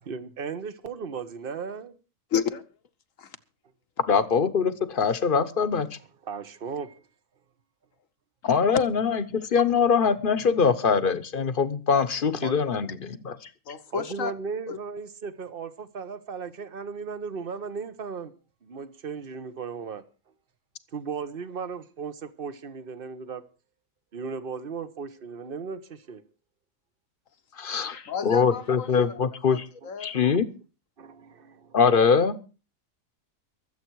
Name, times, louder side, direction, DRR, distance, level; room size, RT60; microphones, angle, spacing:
voice 1, 0.0-2.0 6.2-7.0 12.4-12.5 13.9-18.3 18.6-20.0 20.9-23.4 24.1-26.2 29.8-29.9 30.2-30.4 31.0-31.8, right 5 dB, 45° right, 1.2 m, -36 dB
voice 2, 2.3-2.6 3.2-3.4 8.7-8.8 13.6-14.3 14.7-14.8 27.9-29.2 29.5-30.1, left 8 dB, 75° left, 1.5 m, -31 dB
voice 3, 4.1-5.9 8.4-13.3 27.6-27.9 28.2-29.7 30.0-30.5 31.7-32.4, left 6 dB, 40° left, 1.1 m, -23 dB
23.5 x 8.1 x 4.7 m
omnidirectional pair, 1.4 m